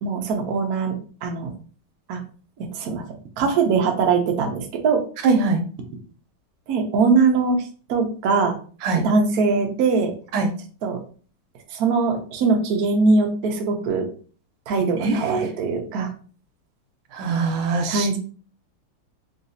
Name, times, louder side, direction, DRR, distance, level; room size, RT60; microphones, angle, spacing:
voice 1, 0.0-1.0 1.2-1.5 2.1-2.2 2.6-3.0 3.4-5.0 6.7-7.6 7.9-8.5 9.0-10.1 10.8-11.0 11.7-14.0 14.7-16.1 17.9-18.2, right 4 dB, 65° right, 2 dB, 1.0 m, -21 dB
voice 2, 5.2-5.6 8.8-9.0 10.3-10.5 15.0-15.4 17.1-18.1, right 4 dB, 90° right, 5 dB, 1.6 m, -22 dB
3.9 x 2.7 x 2.6 m, 0.40 s
omnidirectional pair, 2.3 m